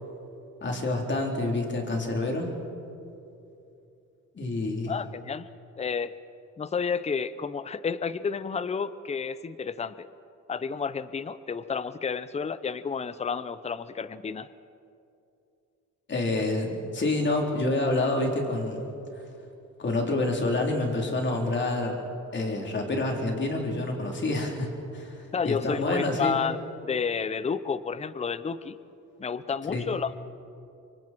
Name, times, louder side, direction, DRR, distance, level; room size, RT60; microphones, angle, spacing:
voice 1, 0.6-2.5 4.4-5.0 16.1-18.9 19.8-22.0 22.3-26.4 29.7-29.9, left 2 dB, 40° left, 1 dB, 4.0 m, -28 dB
voice 2, 4.9-5.5 5.8-6.1 6.6-10.1 10.5-14.5 25.3-26.6 26.8-28.8 29.2-30.2, left 6 dB, 20° left, 15 dB, 0.7 m, -31 dB
26.0 x 24.0 x 4.6 m, 2.7 s
cardioid pair, 90°, 30 cm